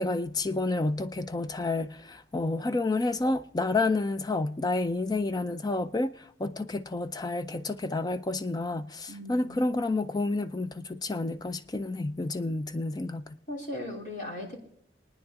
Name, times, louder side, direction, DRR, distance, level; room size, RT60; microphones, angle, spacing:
voice 1, 0.0-13.4, left 2 dB, 20° left, 0.4 m, -30 dB
voice 2, 9.1-9.6 13.5-14.6, left 1 dB, 45° left, 3.2 m, -38 dB
23.0 x 9.6 x 3.7 m
head